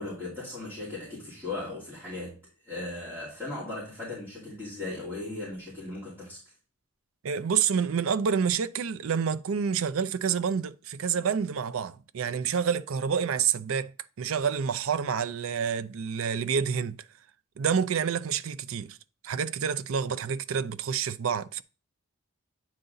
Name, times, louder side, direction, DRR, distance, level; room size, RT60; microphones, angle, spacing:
voice 1, 0.0-2.4 2.6-6.4, left 2 dB, 10° right, 2.9 m, -37 dB
voice 2, 7.2-13.9 14.2-17.0 17.6-19.0 19.2-21.6, right 7 dB, 75° right, 0.4 m, -28 dB
9.0 x 4.0 x 3.9 m
head